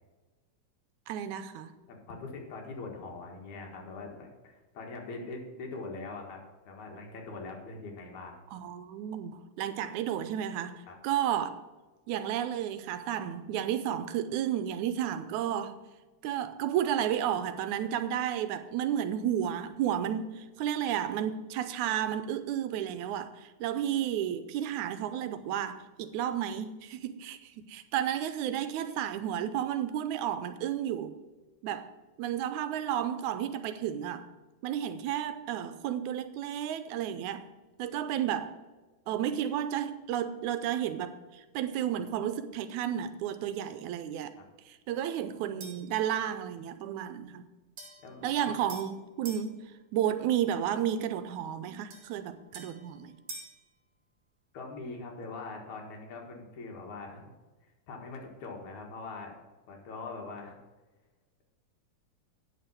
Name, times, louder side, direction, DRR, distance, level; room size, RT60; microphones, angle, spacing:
voice 1, 1.1-1.7 8.5-11.5 12.1-15.8 16.2-31.1 31.6-31.9 32.2-34.3 34.6-37.5 37.8-38.6 39.1-44.3 44.7-47.5 48.2-49.6 49.9-53.2, right 10 dB, 85° right, 2.0 m, -32 dB
voice 2, 1.9-6.4 6.6-8.4 10.9-11.0 44.4-44.5 48.0-48.5 54.5-57.3 57.9-59.4 59.7-60.6, left 3 dB, 75° left, 3.1 m, -42 dB
sound 1, 45.6-46.0 47.8-49.5 51.9-53.6, right 3 dB, 60° right, 2.7 m, -47 dB
8.9 x 6.7 x 7.3 m
omnidirectional pair, 3.4 m